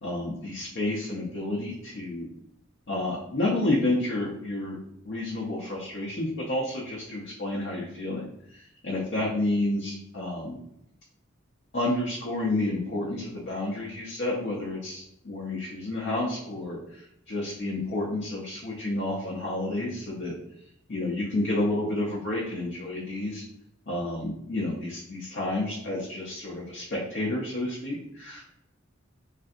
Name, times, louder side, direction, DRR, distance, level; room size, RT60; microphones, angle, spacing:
voice 1, 0.0-2.3 2.9-4.8 5.0-10.6 11.7-20.3 20.9-23.4 23.9-28.4, left 2 dB, 55° left, -4 dB, 0.5 m, -30 dB
3.3 x 2.6 x 2.4 m, 0.75 s
head